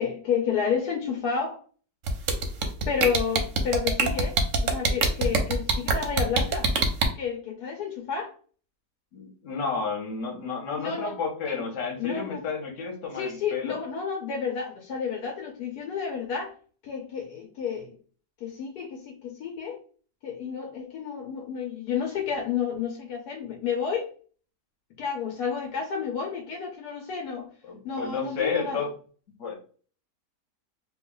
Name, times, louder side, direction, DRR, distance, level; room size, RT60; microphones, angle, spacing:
voice 1, 0.0-1.6 2.9-6.7 7.2-8.3 10.8-11.2 11.5-11.7 12.0-12.5 13.1-16.5 16.8-18.0 18.4-19.8 20.2-24.1 25.0-27.5 27.8-28.9, left 6 dB, 75° left, 1 dB, 1.1 m, -30 dB
sound 1, 2.1-7.1, right 4 dB, 60° right, 0.8 m, -23 dB
voice 2, 9.1-13.8 27.7-28.9 29.4-29.5, left 5 dB, 55° left, 1 dB, 1.1 m, -31 dB
2.8 x 2.3 x 3.7 m, 0.42 s
omnidirectional pair, 1.8 m